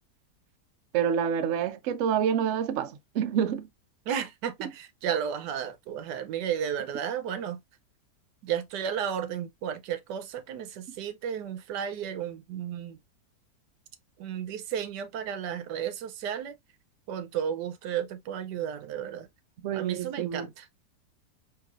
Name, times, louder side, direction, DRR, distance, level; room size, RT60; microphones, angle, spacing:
voice 1, 0.9-3.7 19.6-20.5, right 8 dB, 65° right, 0.8 m, -27 dB
voice 2, 4.1-7.6 8.4-13.0 14.2-16.6 17.1-19.3 19.7-20.7, right 8 dB, 90° right, 1.3 m, -33 dB
4.8 x 3.2 x 2.4 m
omnidirectional pair, 1.8 m